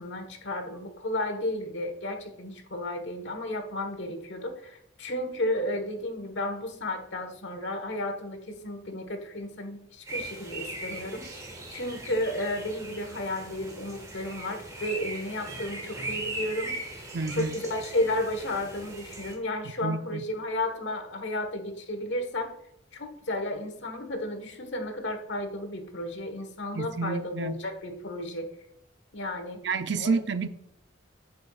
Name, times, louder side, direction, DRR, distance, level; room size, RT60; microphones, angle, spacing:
voice 1, 0.0-16.8 17.3-22.5 22.9-28.5 29.1-29.6 30.0-30.2, left 1 dB, 65° left, 7 dB, 1.3 m, -33 dB
sound 1, 10.1-19.3, right 2 dB, 15° right, 1.5 m, -39 dB
voice 2, 17.1-17.5 19.8-20.2 26.7-27.6 29.6-30.5, right 4 dB, 60° right, 11 dB, 0.5 m, -29 dB
7.9 x 7.9 x 2.4 m, 0.79 s
head